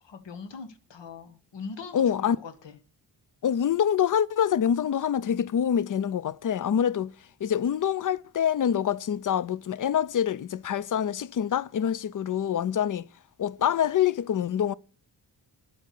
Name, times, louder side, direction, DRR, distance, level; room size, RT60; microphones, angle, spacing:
voice 1, 0.0-2.8, left 5 dB, 85° left, 1.5 m, -41 dB
voice 2, 1.9-2.4 3.4-7.1 7.4-13.1 13.4-14.7, left 9 dB, 50° left, 0.5 m, -25 dB
9.2 x 6.3 x 6.6 m
wide cardioid pair, 110°, 42 cm